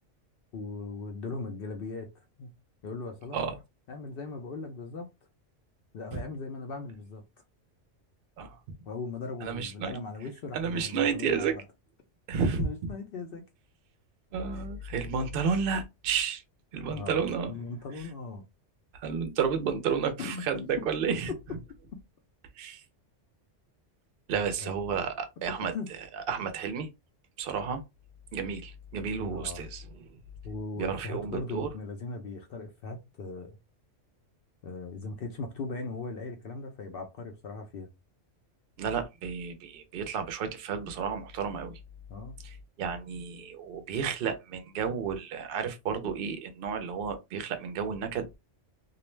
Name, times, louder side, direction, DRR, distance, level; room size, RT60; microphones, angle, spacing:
voice 1, 0.5-2.1 2.4-2.6 2.8-3.5 3.9-5.1 5.9-7.2 8.9-11.6 12.6-13.4 14.5-14.6 16.9-18.4 20.2-20.4 21.3-21.4 24.3-24.7 25.6-25.9 29.2-29.7 30.4-33.6 34.6-37.9 42.1-42.4, left 3 dB, 60° left, 0.6 m, -39 dB
voice 2, 9.4-10.0 10.5-11.6 12.3-12.6 14.3-16.4 16.7-17.5 18.9-21.3 22.6-22.8 24.3-25.7 26.3-26.9 27.4-27.8 28.3-30.1 30.8-31.7 38.8-41.8 42.4-48.4, right 6 dB, 60° right, 0.6 m, -31 dB
2.4 x 2.1 x 3.1 m
omnidirectional pair, 1.3 m